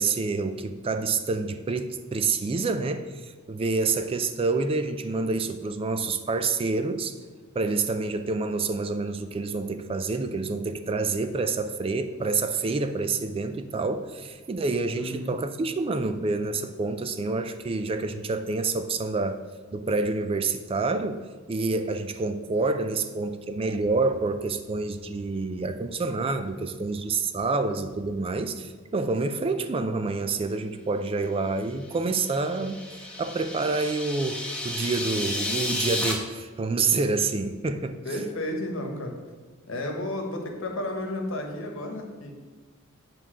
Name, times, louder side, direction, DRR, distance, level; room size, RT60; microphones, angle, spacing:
voice 1, 0.0-7.1 7.5-19.4 19.7-32.8 33.2-38.0, right 3 dB, 25° right, 9 dB, 0.3 m, -28 dB
voice 2, 15.0-15.3 38.0-39.1 39.7-42.3, left 1 dB, 65° left, 3 dB, 1.3 m, -32 dB
sound 1, 32.0-36.1, left 1 dB, 5° left, 0.9 m, -32 dB
7.9 x 3.6 x 6.2 m, 1.4 s
head